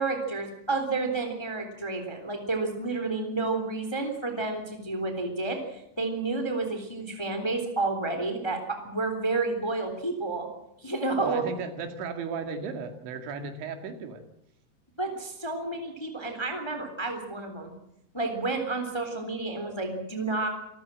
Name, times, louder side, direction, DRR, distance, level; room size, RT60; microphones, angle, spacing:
voice 1, 0.0-10.5 10.8-11.4 15.0-17.7 18.1-20.5, right 3 dB, 10° left, 6 dB, 2.2 m, -30 dB
voice 2, 11.2-14.2, right 5 dB, 85° right, 6 dB, 4.5 m, -35 dB
26.5 x 14.0 x 7.6 m, 0.80 s
omnidirectional pair, 5.1 m